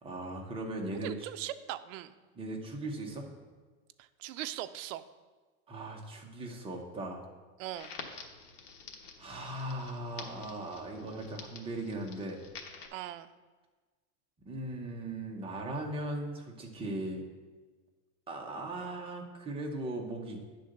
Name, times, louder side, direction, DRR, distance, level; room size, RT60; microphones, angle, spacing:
voice 1, 0.0-1.3 2.3-3.3 5.7-7.2 9.2-12.4 14.4-17.2 18.3-20.4, right 1 dB, 15° right, 0 dB, 0.8 m, -38 dB
voice 2, 1.0-2.1 4.2-5.0 7.6-7.9 12.9-13.3, right 13 dB, 65° right, 11 dB, 0.5 m, -39 dB
Crackle, 7.8-12.9, left 5 dB, 90° left, 1.3 m, -49 dB
9.4 x 3.8 x 6.5 m, 1.3 s
supercardioid pair, 160°, 43 cm